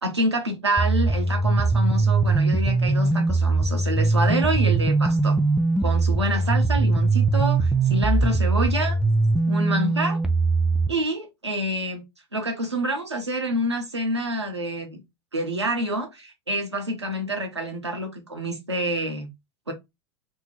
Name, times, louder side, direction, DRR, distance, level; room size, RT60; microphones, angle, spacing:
voice 1, 0.0-5.4 5.8-9.0 9.5-10.2 10.9-12.0 12.3-15.0 15.3-19.3 19.7-19.8, right 1 dB, 85° right, 0.9 m, -27 dB
sound 1, 0.8-10.9, right 3 dB, 5° right, 0.4 m, -21 dB
2.6 x 2.2 x 3.2 m
figure-of-eight pair, 85°, 14 cm